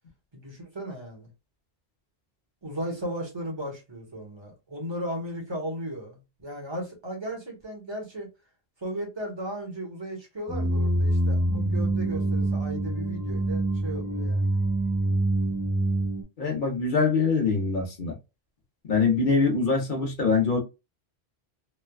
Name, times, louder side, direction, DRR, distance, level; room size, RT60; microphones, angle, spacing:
voice 1, 0.3-1.3 2.6-8.3 8.8-14.6, equal, 25° right, 1.0 m, -36 dB
sound 1, 10.5-16.2, right 1 dB, 10° left, 0.6 m, -25 dB
voice 2, 16.4-18.1 18.9-20.6, left 4 dB, 50° left, 1.0 m, -23 dB
3.2 x 2.2 x 2.2 m
omnidirectional pair, 1.1 m